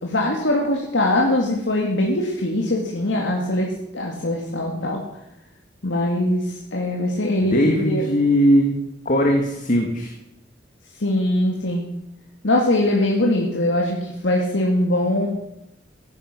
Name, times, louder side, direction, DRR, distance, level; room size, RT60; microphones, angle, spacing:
voice 1, 0.0-3.7 3.9-5.0 5.8-8.0 11.0-11.8 12.4-15.3, left 1 dB, 85° left, -1 dB, 2.1 m, -22 dB
voice 2, 7.5-8.8 9.1-10.1, equal, 45° left, 2 dB, 1.7 m, -19 dB
15.0 x 11.0 x 6.1 m, 0.84 s
head